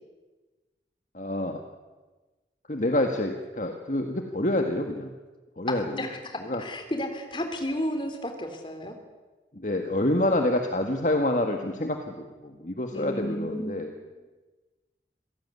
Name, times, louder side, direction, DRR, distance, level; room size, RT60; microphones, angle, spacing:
voice 1, 1.1-1.6 2.7-5.1 5.6-5.9 6.4-6.6 9.5-13.9, left 1 dB, 45° left, 4 dB, 1.8 m, -27 dB
voice 2, 6.0-9.0 12.9-14.1, equal, 30° left, 5 dB, 3.5 m, -33 dB
26.0 x 17.0 x 9.8 m, 1.2 s
head